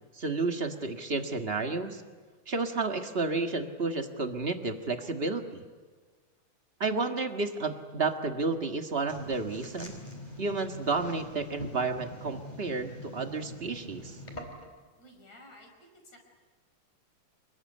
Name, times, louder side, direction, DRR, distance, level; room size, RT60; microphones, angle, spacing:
voice 1, 0.1-2.0 2.5-5.6 6.8-9.9 10.4-14.2, right 3 dB, 30° right, 5 dB, 1.1 m, -31 dB
sound 1, 9.1-14.8, equal, 15° left, 4.3 m, -44 dB
voice 2, 15.0-16.3, left 1 dB, 60° left, 2 dB, 6.7 m, -54 dB
28.5 x 21.5 x 9.7 m, 1.4 s
omnidirectional pair, 3.5 m